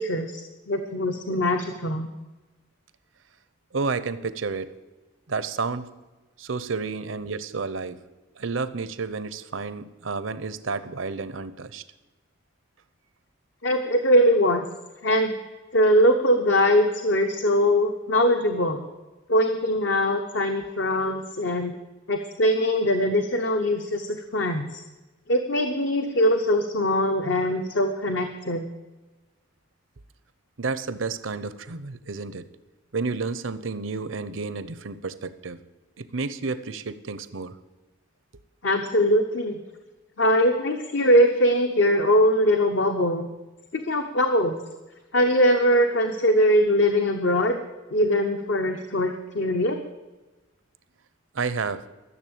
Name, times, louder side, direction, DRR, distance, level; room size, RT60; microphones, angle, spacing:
voice 1, 0.0-2.1 13.6-14.7 15.0-15.3 15.7-18.8 19.3-21.7 22.1-24.8 25.3-28.6 38.6-39.6 40.2-43.3 43.7-44.5 45.1-47.6 47.9-49.8, equal, 60° left, 5 dB, 0.9 m, -22 dB
voice 2, 3.7-4.7 5.3-5.9 6.4-8.0 8.4-11.8 30.6-32.5 32.9-35.6 36.0-37.6 51.3-51.8, right 4 dB, 75° right, 14 dB, 0.8 m, -31 dB
14.0 x 7.1 x 8.7 m, 1.1 s
head